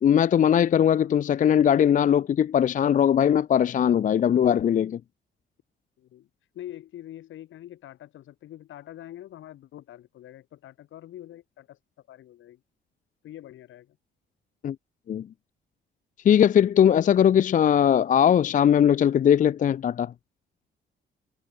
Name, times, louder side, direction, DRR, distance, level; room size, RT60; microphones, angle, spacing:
voice 1, 0.0-5.0 14.6-14.8 15.1-15.3 16.2-20.1, left 9 dB, 40° left, 0.4 m, -20 dB
voice 2, 6.0-6.3 6.5-12.6 13.2-14.0, left 13 dB, 75° left, 2.3 m, -44 dB
cardioid pair, 90°, 20 cm